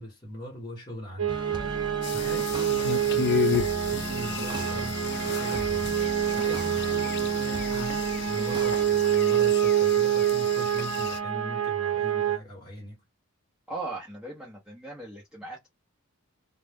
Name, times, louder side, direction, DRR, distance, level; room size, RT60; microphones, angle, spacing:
voice 1, 0.0-1.4 2.1-13.0, right 1 dB, 20° left, 1.1 m, -41 dB
sound 1, 1.2-12.4, right 10 dB, 60° right, 0.7 m, -26 dB
sound 2, 1.3-8.9, right 2 dB, 20° right, 0.4 m, -38 dB
sound 3, 2.0-11.2, left 9 dB, 50° left, 0.3 m, -34 dB
voice 2, 13.7-15.7, right 2 dB, 5° right, 0.8 m, -38 dB
2.3 x 2.1 x 3.4 m
head